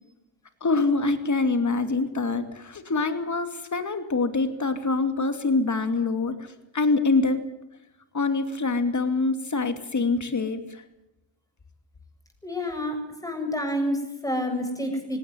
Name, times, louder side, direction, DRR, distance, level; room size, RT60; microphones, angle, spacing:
voice 1, 0.6-7.4 8.1-10.8, left 3 dB, 35° left, 8 dB, 2.7 m, -25 dB
voice 2, 12.4-15.2, equal, 5° left, 4 dB, 7.9 m, -29 dB
18.5 x 17.5 x 9.7 m, 0.94 s
cardioid pair, 70°, 48 cm